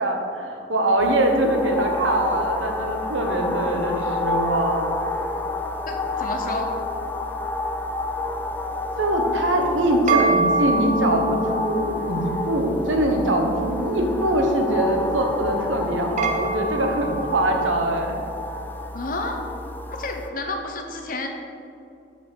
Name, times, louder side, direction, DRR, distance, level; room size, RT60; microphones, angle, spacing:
voice 1, 0.0-4.8 9.0-18.2, right 1 dB, 90° right, 3 dB, 1.1 m, -23 dB
sound 1, 1.0-20.3, left 2 dB, 10° left, 0.4 m, -30 dB
voice 2, 5.9-6.7 18.9-19.4 19.9-21.3, left 2 dB, 45° left, 4 dB, 0.8 m, -30 dB
sound 2, 9.5-18.0, right 3 dB, 40° right, 0.6 m, -28 dB
5.9 x 5.5 x 6.9 m, 2.6 s
head